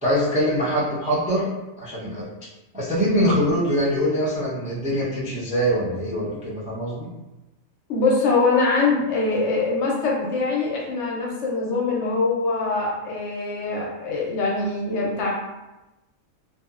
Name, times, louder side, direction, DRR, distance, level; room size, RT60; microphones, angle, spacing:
voice 1, 0.0-1.5 1.8-2.3 2.7-7.1, equal, 10° right, -8 dB, 0.3 m, -23 dB
voice 2, 7.9-15.3, left 3 dB, 65° left, -3 dB, 0.8 m, -23 dB
2.7 x 2.4 x 2.4 m, 1.0 s
omnidirectional pair, 1.4 m